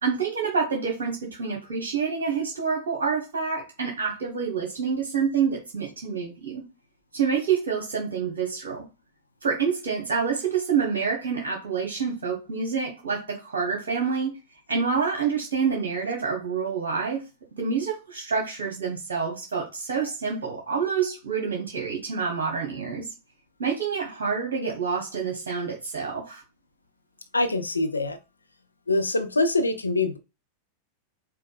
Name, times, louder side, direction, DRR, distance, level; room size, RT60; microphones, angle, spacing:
voice 1, 0.0-6.6 7.1-8.8 9.4-14.3 14.7-17.2 17.6-23.1 23.6-26.4, right 6 dB, 65° right, 1.0 m, -27 dB
voice 2, 27.3-28.2 28.9-30.2, left 2 dB, 80° left, 0.5 m, -24 dB
4.8 x 2.2 x 2.5 m
figure-of-eight pair, 90°, 0 cm